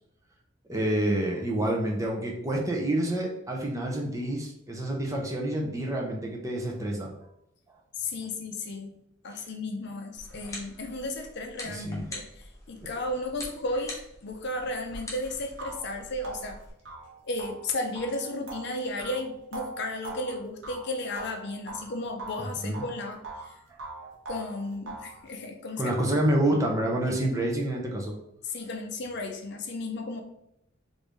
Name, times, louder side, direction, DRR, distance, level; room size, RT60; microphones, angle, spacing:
voice 1, 0.7-7.1 9.3-9.4 11.7-12.1 22.6-22.8 23.7-23.8 25.8-28.1, right 1 dB, 15° right, -1 dB, 0.6 m, -28 dB
voice 2, 8.0-8.9 9.2-13.9 14.2-16.6 17.2-23.5 24.3-25.9 27.1-27.2 28.4-30.2, left 2 dB, 60° left, 3 dB, 0.5 m, -34 dB
sound 1, 10.2-16.7, left 1 dB, 15° left, 0.8 m, -44 dB
sound 2, 15.0-15.1 15.6-21.9 22.2-23.5 23.8-25.2, right 3 dB, 75° right, 0.8 m, -41 dB
3.2 x 2.6 x 3.3 m, 0.78 s
head